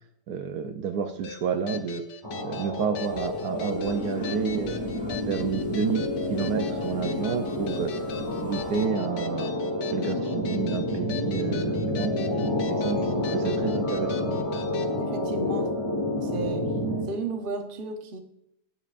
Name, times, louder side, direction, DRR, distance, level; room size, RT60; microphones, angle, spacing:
voice 1, 0.3-2.0 2.4-4.8 5.1-7.9 8.4-9.5 9.9-12.2 12.7-14.3, right 6 dB, 70° right, 1.1 m, -30 dB
sound 1, 1.2-14.9, left 6 dB, 85° left, 1.5 m, -41 dB
sound 2, 2.2-17.1, left 1 dB, 20° left, 1.2 m, -29 dB
sound 3, 2.9-8.9, equal, 5° right, 0.9 m, -46 dB
voice 2, 15.0-15.7 16.2-16.7 17.1-18.2, right 3 dB, 35° right, 1.0 m, -33 dB
17.5 x 7.3 x 2.5 m
omnidirectional pair, 1.8 m